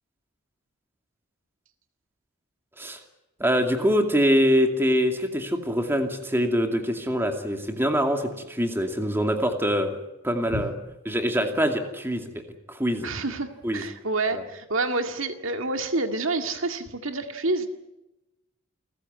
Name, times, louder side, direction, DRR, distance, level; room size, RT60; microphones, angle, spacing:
voice 1, 3.4-10.0 10.2-10.7 11.1-12.3 12.7-13.1 13.6-13.8 14.3-14.4, equal, 10° right, 5 dB, 2.5 m, -24 dB
voice 2, 13.0-17.7, right 2 dB, 65° right, 6 dB, 2.1 m, -28 dB
29.0 x 15.0 x 9.7 m, 0.98 s
head